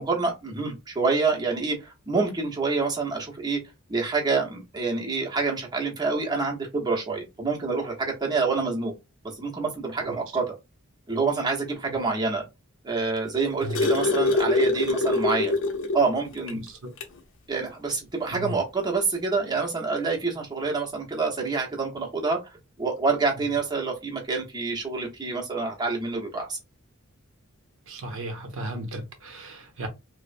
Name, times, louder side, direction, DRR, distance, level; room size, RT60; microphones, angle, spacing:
voice 1, 0.0-3.6 3.9-8.9 9.4-10.5 11.1-12.4 12.8-15.5 15.9-16.7 17.5-22.4 22.8-26.6, right 4 dB, 20° right, 0.8 m, -27 dB
sound 1, 13.2-16.1 16.5-16.6 17.0-17.2 18.3-18.4, left 2 dB, 65° left, 0.6 m, -24 dB
voice 2, 27.9-29.9, right 1 dB, 65° right, 0.6 m, -35 dB
3.0 x 2.0 x 2.5 m
head